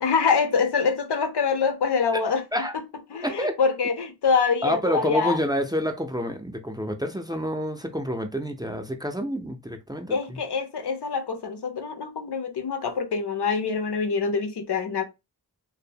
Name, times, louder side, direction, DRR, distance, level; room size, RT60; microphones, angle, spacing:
voice 1, 0.0-2.4 3.1-5.4 10.1-15.0, left 5 dB, 90° left, 0.6 m, -25 dB
voice 2, 3.2-3.5 4.6-10.4, equal, 10° right, 0.4 m, -28 dB
2.6 x 2.0 x 2.7 m
wide cardioid pair, 65°, 39 cm